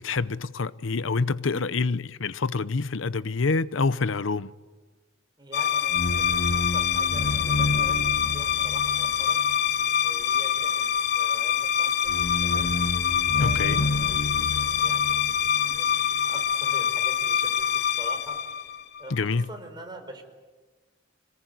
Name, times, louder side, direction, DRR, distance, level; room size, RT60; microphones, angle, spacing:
voice 1, 0.0-4.5 13.4-13.8 19.1-19.5, left 4 dB, 90° left, 0.8 m, -27 dB
voice 2, 5.4-8.0 8.3-9.4 10.0-10.8 11.1-11.9 12.4-12.7 13.4-14.1 14.5-15.2 15.5-16.0 16.2-17.6 18.0-20.2, right 2 dB, 25° right, 4.6 m, -45 dB
sound 1, 5.5-19.2, left 7 dB, 55° left, 0.8 m, -24 dB
25.5 x 19.5 x 9.5 m
head